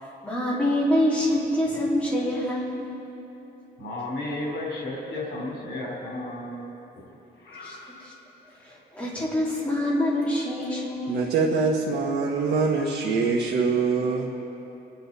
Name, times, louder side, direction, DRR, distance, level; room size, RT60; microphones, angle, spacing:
voice 1, 0.0-2.9 7.6-7.8 8.6-11.1, left 1 dB, 5° left, -7 dB, 2.8 m, -25 dB
voice 2, 3.8-6.6 7.4-7.9, left 2 dB, 80° left, -6 dB, 3.7 m, -33 dB
voice 3, 11.1-14.3, right 4 dB, 70° right, -3 dB, 1.2 m, -24 dB
28.5 x 10.0 x 4.1 m, 3.0 s
wide cardioid pair, 180°, 18 cm